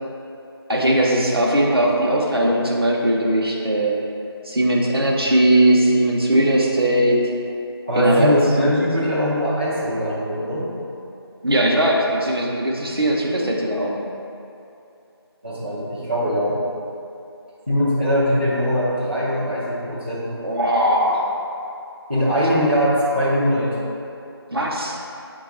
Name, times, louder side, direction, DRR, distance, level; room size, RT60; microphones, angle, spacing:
voice 1, 0.7-4.0 4.4-7.2 8.0-8.9 11.4-14.0 20.4-21.2 24.5-25.0, right 1 dB, 65° right, -2 dB, 0.7 m, -19 dB
voice 2, 7.9-10.7 15.4-16.6 17.7-20.3 22.1-23.8, equal, 25° right, -10 dB, 0.5 m, -21 dB
5.1 x 2.3 x 4.1 m, 2.7 s
figure-of-eight pair, 170°, 14 cm